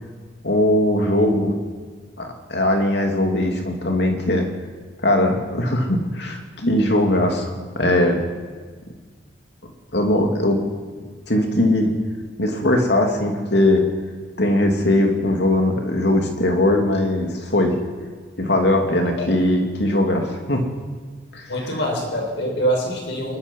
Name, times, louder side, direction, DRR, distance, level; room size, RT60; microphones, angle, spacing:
voice 1, 0.4-1.5 2.2-4.5 5.0-8.2 9.9-10.6 11.3-11.9 12.4-13.8 14.4-17.8 18.4-20.6 21.3-21.5, left 1 dB, 60° left, 2 dB, 2.8 m, -20 dB
voice 2, 21.5-23.4, right 1 dB, 75° left, 1 dB, 5.3 m, -24 dB
22.5 x 21.0 x 5.6 m, 1.5 s
head